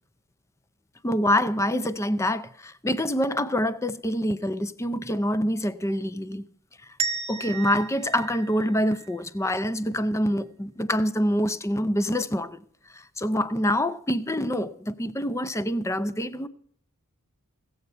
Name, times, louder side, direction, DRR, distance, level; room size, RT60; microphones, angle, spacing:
voice 1, 1.0-6.4 7.3-12.6 12.9-16.5, equal, 15° left, 0.5 m, -26 dB
sound 1, 7.0-9.8, right 5 dB, 25° right, 1.0 m, -34 dB
16.5 x 7.9 x 5.5 m
head